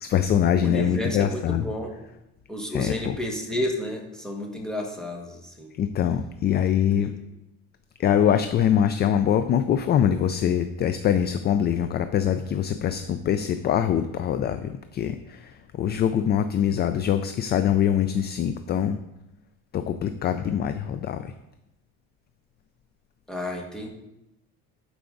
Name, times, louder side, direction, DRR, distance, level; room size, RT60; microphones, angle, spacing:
voice 1, 0.0-1.7 2.7-3.2 5.8-7.1 8.0-19.0 19.7-21.3, left 9 dB, 30° left, 10 dB, 0.4 m, -23 dB
voice 2, 0.5-1.9 2.5-5.7 7.0-7.1 23.3-23.9, left 1 dB, ahead, 0 dB, 1.5 m, -31 dB
11.5 x 4.9 x 3.9 m, 0.90 s
cardioid pair, 130°, 34 cm